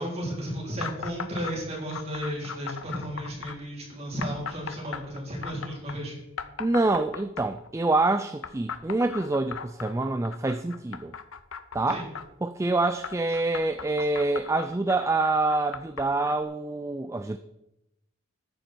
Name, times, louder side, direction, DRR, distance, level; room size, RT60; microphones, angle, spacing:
voice 1, 0.0-6.2 11.9-12.0, equal, 30° right, -3 dB, 4.0 m, -34 dB
sound 1, 0.8-1.6 1.9-3.6 4.2-6.0 6.4-7.7 8.4-12.3 12.8-16.4, left 6 dB, 85° left, 0.8 m, -38 dB
voice 2, 6.6-11.1 11.7-12.0 12.4-17.4, right 2 dB, 15° right, 10 dB, 0.3 m, -26 dB
14.0 x 9.3 x 4.5 m, 0.88 s
head